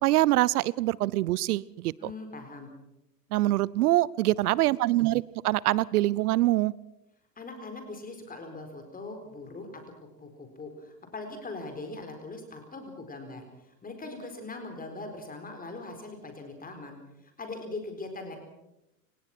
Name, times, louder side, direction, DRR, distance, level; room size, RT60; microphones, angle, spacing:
voice 1, 0.0-2.1 3.3-6.7, right 16 dB, 65° right, 23 dB, 0.7 m, -24 dB
voice 2, 2.0-2.7 7.4-9.7 10.0-18.4, left 2 dB, 15° left, 5 dB, 4.4 m, -41 dB
28.0 x 18.0 x 6.1 m, 0.88 s
hypercardioid pair, 105°, 49 cm